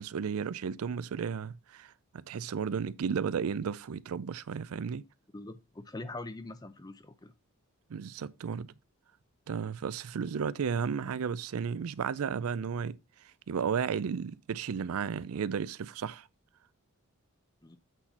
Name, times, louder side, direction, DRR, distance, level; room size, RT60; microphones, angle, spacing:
voice 1, 0.0-5.0 7.9-8.7 9.5-13.0 13.5-16.3, right 6 dB, 75° right, 0.4 m, -33 dB
voice 2, 5.3-7.3 17.6-17.8, left 2 dB, 15° left, 0.5 m, -43 dB
8.1 x 4.2 x 4.2 m
head